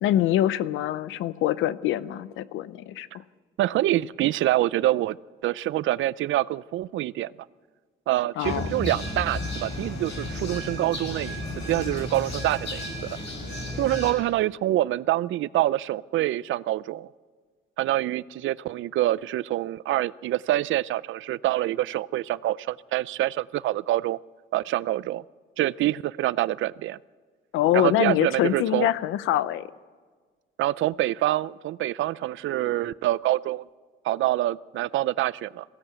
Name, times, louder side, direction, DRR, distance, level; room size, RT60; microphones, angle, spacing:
voice 1, 0.0-3.2 8.4-8.7 27.5-29.7, left 12 dB, 90° left, 17 dB, 0.7 m, -24 dB
voice 2, 3.6-5.2 5.4-7.3 8.1-11.4 11.7-12.8 13.8-17.1 17.8-24.2 24.5-25.2 25.6-27.0 27.7-28.9 30.6-33.6 34.0-35.6, right 15 dB, 75° right, 19 dB, 0.5 m, -26 dB
sound 1, 8.4-14.1, left 1 dB, 65° left, 6.6 m, -33 dB
21.0 x 16.0 x 8.0 m, 1.5 s
cardioid pair, 90°, 20 cm